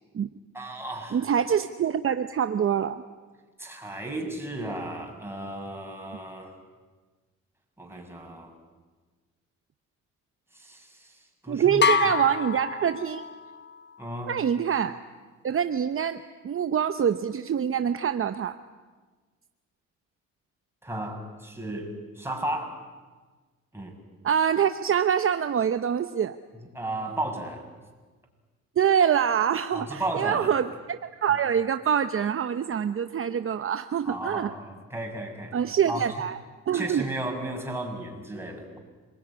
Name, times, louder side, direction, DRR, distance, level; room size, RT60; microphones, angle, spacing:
voice 1, 0.5-1.2 3.6-6.6 7.8-8.5 10.5-12.1 14.0-14.3 20.8-22.8 23.7-23.9 26.6-27.6 29.7-30.5 31.3-31.4 34.0-35.6 35.9-36.0 36.7-38.8, right 1 dB, 10° right, 2 dB, 6.5 m, -34 dB
voice 2, 1.1-3.0 11.5-13.2 14.3-15.0 15.4-18.6 24.2-26.4 28.8-34.5 35.5-36.4 36.7-37.0, right 8 dB, 45° right, 10 dB, 0.9 m, -25 dB
sound 1, 11.8-13.6, left 6 dB, 35° left, 0.9 m, -26 dB
27.0 x 20.0 x 9.9 m, 1.4 s
cardioid pair, 90°, 30 cm